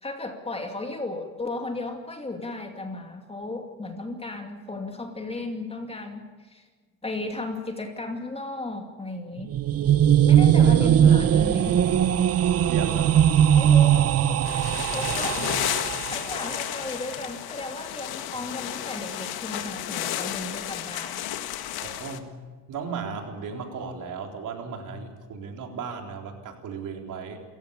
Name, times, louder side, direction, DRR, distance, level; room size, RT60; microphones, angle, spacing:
voice 1, 0.0-6.7 7.0-9.5 10.3-11.8 13.6-14.4 14.9-15.6 16.1-21.2, left 2 dB, 15° left, 4 dB, 2.5 m, -35 dB
sound 1, 9.4-16.4, right 9 dB, 40° right, 0.8 m, -20 dB
voice 2, 10.6-11.2 12.7-13.3 14.5-15.1 15.6-15.7 21.8-22.3 22.7-27.4, right 5 dB, 55° right, 3 dB, 4.0 m, -36 dB
sound 2, 14.4-22.2, left 12 dB, 80° left, 1.8 m, -32 dB
28.0 x 15.5 x 7.1 m, 1.4 s
cardioid pair, 135°, 36 cm